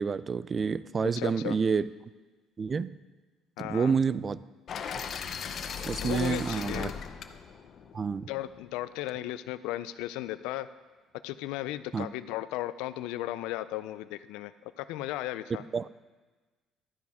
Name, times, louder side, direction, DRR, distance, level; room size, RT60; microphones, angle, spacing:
voice 1, 0.0-1.9 2.6-2.9 3.6-4.4 5.8-6.9 7.9-8.3 11.9-12.1 15.7-15.9, right 5 dB, 35° right, 17 dB, 0.3 m, -28 dB
voice 2, 1.0-1.6 3.6-3.9 6.0-6.9 8.3-10.7 11.2-15.6, left 15 dB, 85° left, 14 dB, 0.4 m, -35 dB
Metal warehouse door opened with chains, 4.7-8.7, left 6 dB, 55° left, 0.7 m, -38 dB
12.0 x 9.3 x 3.6 m, 1.3 s
cardioid pair, 90°, 0 cm